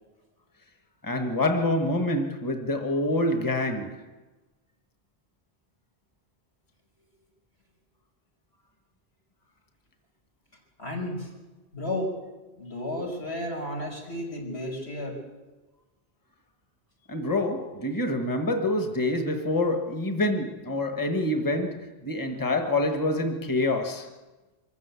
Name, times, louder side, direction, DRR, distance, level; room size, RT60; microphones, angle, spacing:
voice 1, 1.0-4.1 17.1-24.1, left 1 dB, 20° left, 1.5 m, -26 dB
voice 2, 10.8-11.3 11.7-12.1 12.6-15.2, left 1 dB, 85° left, 6.2 m, -32 dB
24.5 x 14.5 x 8.3 m
omnidirectional pair, 1.1 m